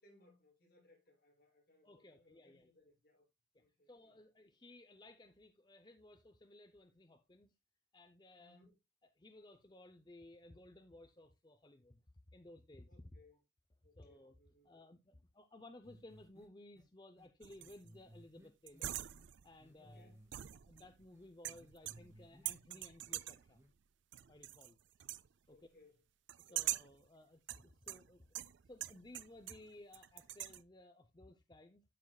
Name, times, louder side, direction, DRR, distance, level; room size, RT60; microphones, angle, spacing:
voice 1, 0.0-3.2 3.6-4.3 8.4-8.7 12.9-13.4 13.8-14.7 19.7-20.2 25.5-26.0 26.4-26.7, left 2 dB, 55° left, 6.7 m, -68 dB
voice 2, 1.8-2.7 3.9-7.5 7.9-8.6 9.2-12.0 12.3-12.9 14.0-14.3 14.6-18.9 19.4-20.1 20.6-23.6 24.3-24.8 25.5-25.7 26.5-31.8, left 1 dB, 25° left, 0.6 m, -58 dB
sound 1, 15.8-16.5 16.8-16.9 17.2-17.3 17.6-19.3 19.6-20.5 20.8-22.5 22.7-23.2 23.5-23.7, equal, 15° right, 2.5 m, -61 dB
sound 2, 17.4-17.9 18.7-19.5 20.3-21.0 21.4-22.2 22.5-23.5 24.1-24.7 25.0-25.3 26.3-27.0 27.5-29.7 29.9-30.6, right 14 dB, 80° right, 0.4 m, -43 dB
11.5 x 7.2 x 2.3 m
head